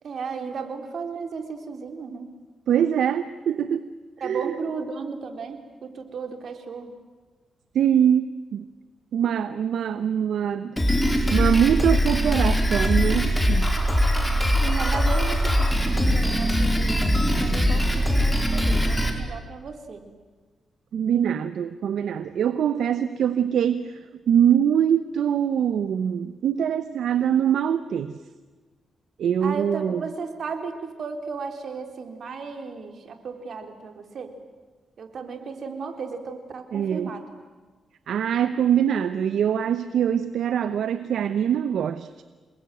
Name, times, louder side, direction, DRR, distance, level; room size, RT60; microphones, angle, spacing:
voice 1, 0.0-2.3 4.2-6.9 14.6-20.1 29.4-34.3 35.0-37.3, right 5 dB, 60° right, 6 dB, 3.8 m, -35 dB
voice 2, 2.7-3.9 4.2-4.5 7.7-8.7 9.1-10.8 11.3-13.8 20.9-24.0 24.3-28.1 29.2-30.0 36.7-37.1 38.1-42.2, right 9 dB, 80° right, 12 dB, 0.9 m, -23 dB
Drum kit, 10.8-19.1, equal, 5° left, 4.5 m, -21 dB
28.0 x 21.0 x 9.3 m, 1.4 s
cardioid pair, 90°, 0 cm